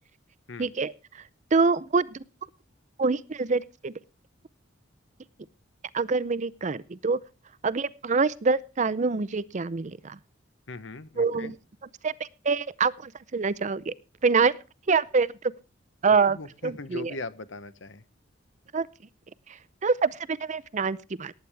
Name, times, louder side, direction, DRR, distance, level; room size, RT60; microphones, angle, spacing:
voice 1, 0.6-1.2 1.5-2.2 3.0-3.9 5.9-7.2 7.6-10.2 11.2-11.6 12.0-13.9 14.2-14.5 14.9-15.5 16.0-16.4 16.6-17.1 18.7-18.9 19.5-21.3, right 4 dB, 40° right, 18 dB, 0.5 m, -25 dB
voice 2, 10.7-11.5 16.3-18.0, left 2 dB, 70° left, 14 dB, 1.0 m, -39 dB
18.5 x 9.3 x 3.4 m, 0.33 s
head